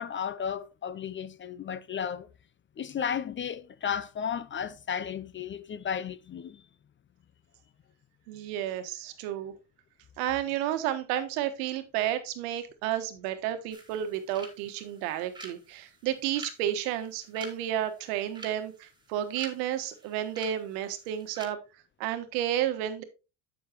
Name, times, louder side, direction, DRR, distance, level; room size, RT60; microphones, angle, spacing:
voice 1, 0.0-2.3 2.8-6.6, left 8 dB, 25° left, 0.5 m, -34 dB
voice 2, 8.3-9.5 10.2-21.6 22.0-23.0, right 11 dB, 90° right, 1.5 m, -31 dB
sound 1, 13.7-21.5, right 2 dB, 10° right, 2.3 m, -49 dB
8.4 x 7.1 x 3.0 m
supercardioid pair, 105°, 44 cm